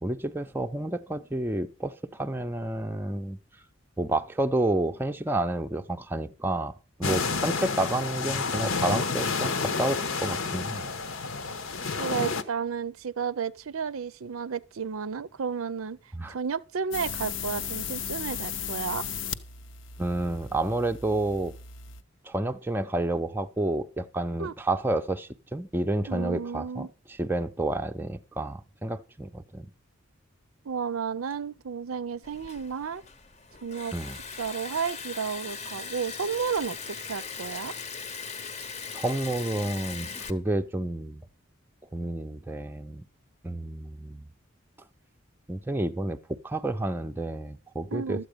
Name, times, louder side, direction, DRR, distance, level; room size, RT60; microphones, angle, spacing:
voice 1, 0.0-3.4 4.0-6.7 7.0-10.9 16.1-16.3 20.0-21.5 22.2-29.7 33.9-34.2 38.9-41.3 41.9-43.1 43.4-44.3 45.5-48.3, right 1 dB, 10° right, 0.5 m, -30 dB
sound 1, 7.0-12.4, left 4 dB, 80° left, 1.1 m, -30 dB
voice 2, 12.0-16.0 16.3-19.0 24.4-24.5 26.1-26.9 30.6-33.0 33.6-33.9 34.4-37.8 47.9-48.3, right 6 dB, 85° right, 0.6 m, -32 dB
sound 2, 16.9-22.0, left 8 dB, 60° left, 0.7 m, -36 dB
Liquid, 32.2-40.3, left 5 dB, 35° left, 0.8 m, -39 dB
13.0 x 8.1 x 5.1 m
head